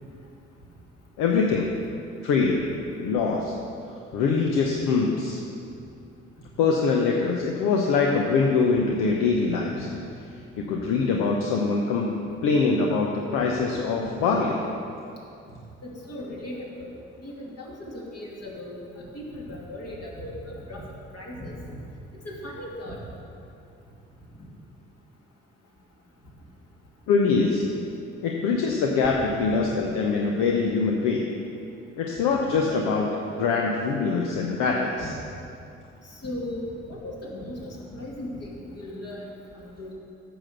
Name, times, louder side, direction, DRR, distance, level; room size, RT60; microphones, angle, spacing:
voice 1, 1.2-1.7 2.2-2.6 3.0-3.5 4.1-5.4 6.6-9.9 10.6-12.1 12.4-14.6 27.1-27.6 28.2-31.3 32.0-35.1, left 4 dB, 70° left, 0 dB, 0.8 m, -23 dB
voice 2, 15.8-16.9 17.2-18.8 19.1-20.8 21.1-21.8 22.2-23.0 29.5-29.6 35.0-35.1 36.2-39.9, left 1 dB, 50° left, -3 dB, 2.5 m, -37 dB
8.7 x 6.1 x 6.5 m, 2.6 s
hypercardioid pair, 45°, 33 cm